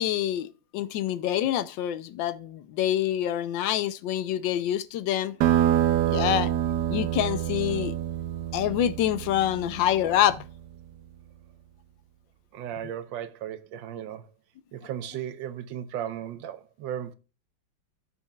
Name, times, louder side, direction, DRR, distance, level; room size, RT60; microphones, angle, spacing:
voice 1, 0.0-5.4 6.1-6.5 6.9-7.9 8.5-10.4, left 11 dB, 80° left, 1.4 m, -26 dB
sound 1, 5.4-10.5, right 11 dB, 70° right, 1.2 m, -26 dB
voice 2, 12.5-14.3 14.7-17.1, right 10 dB, 90° right, 1.5 m, -35 dB
14.0 x 6.7 x 2.3 m
omnidirectional pair, 2.0 m